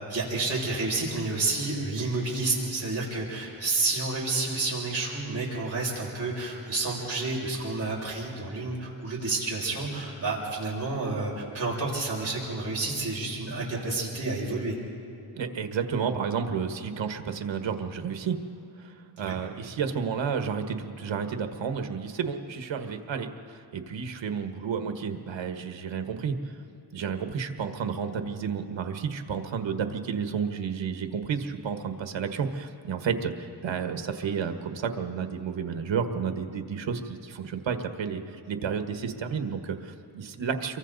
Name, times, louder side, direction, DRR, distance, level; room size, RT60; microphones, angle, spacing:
voice 1, 0.1-14.8 19.2-19.4, right 3 dB, 35° right, -5 dB, 6.7 m, -30 dB
voice 2, 15.3-18.4 18.8-26.3 26.9-38.2 38.5-40.8, right 6 dB, 85° right, 6 dB, 1.5 m, -31 dB
28.5 x 23.5 x 4.1 m, 2.8 s
wide cardioid pair, 110°, 44 cm